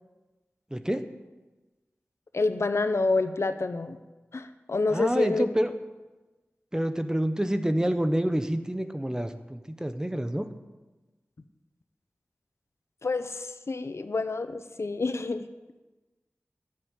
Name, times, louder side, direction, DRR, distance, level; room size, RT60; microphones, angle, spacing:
voice 1, 0.7-1.1 4.9-5.7 6.7-10.5, right 1 dB, 15° right, 9 dB, 1.0 m, -27 dB
voice 2, 2.3-4.0 4.3-5.5 13.0-15.5, left 3 dB, 70° left, 10 dB, 0.8 m, -28 dB
11.5 x 7.6 x 9.3 m, 1.2 s
wide cardioid pair, 60°, 5 cm